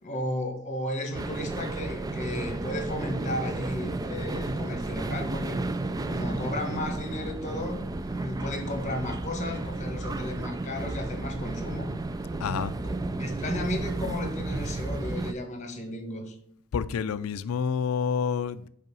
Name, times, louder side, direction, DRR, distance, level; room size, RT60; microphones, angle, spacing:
voice 1, 0.0-5.7 6.1-11.9 12.8-16.3, left 1 dB, 35° left, 5 dB, 1.4 m, -34 dB
sound 1, 1.1-15.3, right 2 dB, 15° right, 0.3 m, -32 dB
voice 2, 12.4-12.7 16.7-18.7, left 6 dB, 75° left, 12 dB, 0.4 m, -28 dB
5.4 x 5.0 x 5.3 m, 0.66 s
head